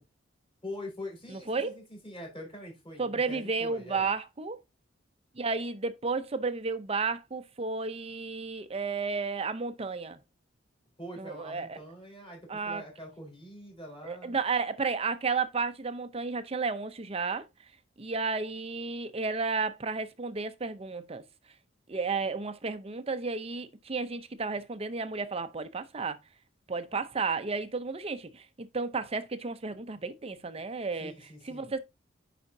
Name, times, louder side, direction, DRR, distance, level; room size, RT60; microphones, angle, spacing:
voice 1, 0.6-4.1 11.0-14.4 31.0-31.7, left 1 dB, 30° left, 4.0 m, -44 dB
voice 2, 1.3-1.7 3.0-4.6 5.4-10.2 11.2-11.8 12.5-12.8 14.0-17.5 18.0-21.2 21.9-26.2 26.7-31.1 31.4-31.8, right 4 dB, 30° right, 0.6 m, -32 dB
9.6 x 5.0 x 2.7 m
head